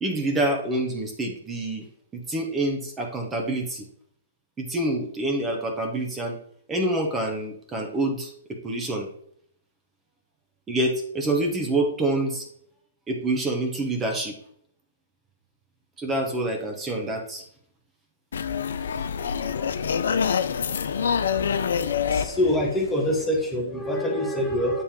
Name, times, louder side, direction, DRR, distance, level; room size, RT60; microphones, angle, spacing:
voice 1, 0.0-1.8 2.1-3.8 4.6-6.4 6.7-9.1 10.7-12.5 13.1-14.3 16.0-17.4 19.2-19.7 21.3-21.5, right 1 dB, 15° right, 2 dB, 1.1 m, -27 dB
sound 1, 18.3-23.5, left 7 dB, 75° left, 0.5 m, -26 dB
voice 2, 22.1-24.8, left 1 dB, 10° left, -1 dB, 1.1 m, -25 dB
7.5 x 3.3 x 4.5 m, 0.65 s
hypercardioid pair, 135°, 0 cm